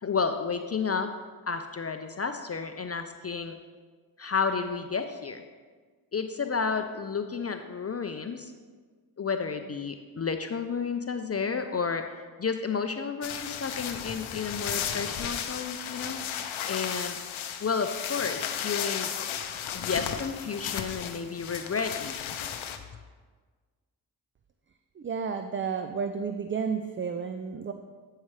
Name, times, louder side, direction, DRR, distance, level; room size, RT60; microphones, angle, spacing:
voice 1, 0.0-1.1 1.5-3.6 4.2-5.4 6.1-8.5 9.2-12.0 12.4-16.2 16.7-17.2 17.6-19.1 19.7-22.4, left 5 dB, 30° left, 7 dB, 0.5 m, -31 dB
sound 1, 13.2-22.8, left 9 dB, 80° left, 0.6 m, -34 dB
voice 2, 25.0-27.7, right 6 dB, 25° right, 7 dB, 0.4 m, -31 dB
8.6 x 5.6 x 3.2 m, 1.5 s
supercardioid pair, 40°, 47 cm